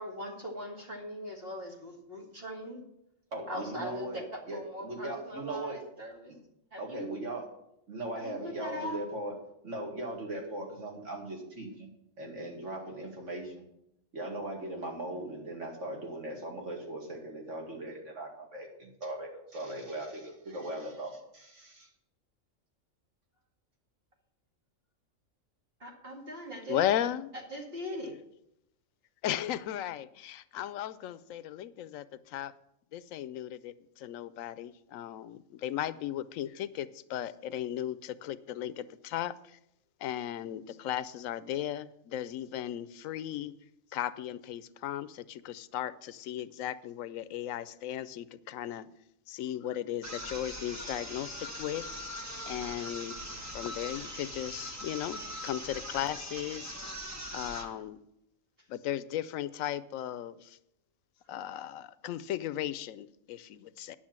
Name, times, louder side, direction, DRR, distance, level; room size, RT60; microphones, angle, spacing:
voice 1, 0.0-2.8 3.5-6.3 6.7-7.1 8.1-9.0 25.8-26.8 27.5-28.1, equal, 45° right, 0 dB, 2.3 m, -41 dB
voice 2, 3.3-5.8 6.8-7.5 7.9-9.3 9.6-11.9 12.2-13.6 14.1-21.9, right 1 dB, 65° right, 0 dB, 2.4 m, -39 dB
voice 3, 26.7-27.3 29.2-32.5 32.9-39.6 40.0-43.5 43.9-48.9 49.3-51.9 52.4-53.2 53.5-56.8 57.3-58.0 58.7-60.6 61.3-63.9, left 11 dB, 85° left, 16 dB, 1.0 m, -36 dB
sound 1, 50.0-57.8, equal, 15° right, 1.2 m, -41 dB
10.0 x 6.3 x 7.4 m, 0.81 s
omnidirectional pair, 1.4 m